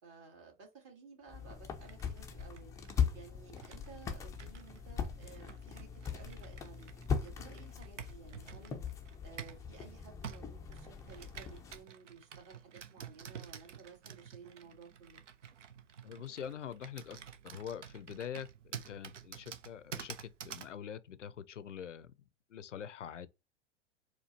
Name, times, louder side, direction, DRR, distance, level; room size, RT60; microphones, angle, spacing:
voice 1, 0.0-2.7 3.1-6.9 7.2-8.8 9.2-15.2, right 5 dB, 40° right, 2.1 m, -55 dB
sound 1, 1.3-11.8, left 6 dB, 10° left, 0.3 m, -40 dB
Computer keyboard, 1.8-9.7 10.2-20.8, right 8 dB, 85° right, 0.6 m, -50 dB
voice 2, 16.0-17.2 17.4-18.5 18.9-22.1 22.5-23.3, left 8 dB, 90° left, 0.5 m, -44 dB
4.4 x 2.3 x 2.7 m
figure-of-eight pair, 100°, 35 cm